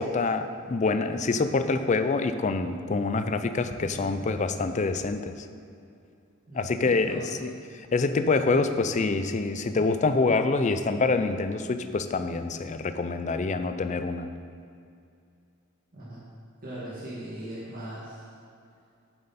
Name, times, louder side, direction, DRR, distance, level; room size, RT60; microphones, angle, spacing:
voice 1, 0.0-5.3 6.5-7.5 7.9-14.3, left 3 dB, 35° left, 9 dB, 0.4 m, -26 dB
voice 2, 6.5-7.5 15.9-16.2 16.6-18.3, right 1 dB, 45° right, -8 dB, 1.9 m, -39 dB
8.7 x 7.9 x 4.2 m, 2.4 s
head